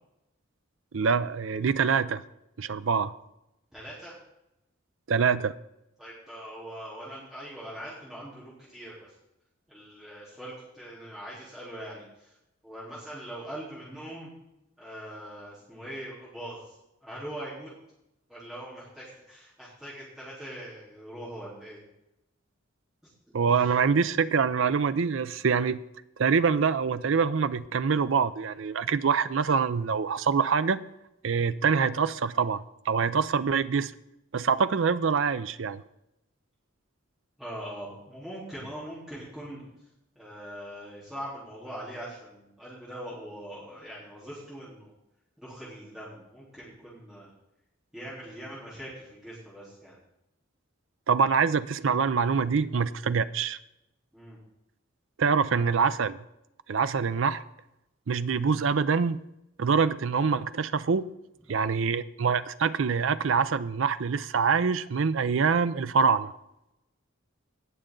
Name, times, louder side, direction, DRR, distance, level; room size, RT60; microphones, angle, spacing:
voice 1, 0.9-2.2 2.6-3.1 5.1-5.5 23.3-25.8 26.2-30.8 31.2-33.9 34.3-35.8 51.1-53.6 55.2-56.2 56.7-57.4 58.1-59.2 59.6-61.1 61.5-66.3, right 5 dB, 65° right, 14 dB, 0.5 m, -25 dB
voice 2, 3.7-4.2 6.0-9.1 9.7-12.4 12.6-14.3 14.8-17.7 18.3-21.8 23.5-23.7 37.4-39.6 40.2-44.9 45.4-47.3 47.9-50.0 54.1-54.4, right 1 dB, 5° right, -9 dB, 3.5 m, -42 dB
17.5 x 6.7 x 3.8 m, 0.88 s
head